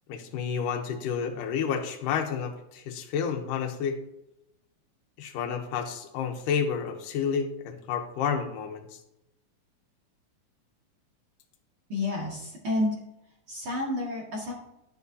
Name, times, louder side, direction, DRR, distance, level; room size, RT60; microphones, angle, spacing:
voice 1, 0.1-4.0 5.2-9.0, left 7 dB, 85° left, 4 dB, 2.5 m, -30 dB
voice 2, 11.9-12.9 13.5-14.5, left 2 dB, 45° right, -4 dB, 2.3 m, -30 dB
11.5 x 9.4 x 2.7 m, 0.87 s
omnidirectional pair, 3.7 m